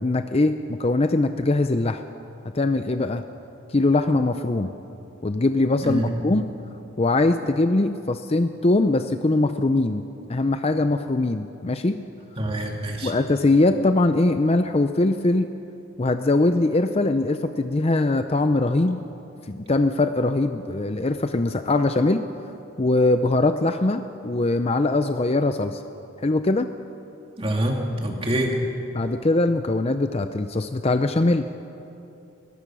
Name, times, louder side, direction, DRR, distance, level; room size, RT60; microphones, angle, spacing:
voice 1, 0.0-2.0 2.5-3.2 3.7-4.7 5.2-6.5 7.0-10.0 10.3-12.0 13.0-15.5 16.0-19.0 19.5-22.2 22.8-25.8 26.2-26.7 28.9-31.5, left 2 dB, 30° left, 9 dB, 0.5 m, -21 dB
voice 2, 12.4-13.1 27.4-28.6, equal, 25° right, 1 dB, 2.4 m, -25 dB
22.0 x 20.5 x 6.2 m, 2.8 s
head